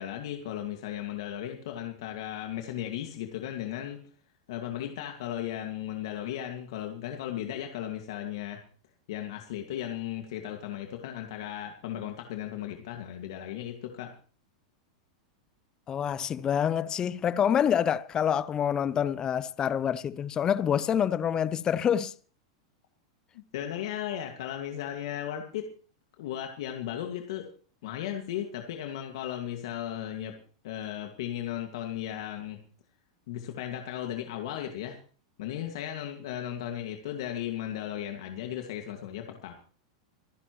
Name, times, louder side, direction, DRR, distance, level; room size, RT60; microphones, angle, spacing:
voice 1, 0.0-4.0 4.5-8.6 9.1-14.2 23.3-25.7 26.2-27.5 27.8-30.4 30.6-32.6 33.3-35.0 35.4-39.5, left 11 dB, 70° left, 2.0 m, -36 dB
voice 2, 15.9-22.1, left 8 dB, 25° left, 0.6 m, -27 dB
25.5 x 11.0 x 3.1 m
hypercardioid pair, 110°, 3 cm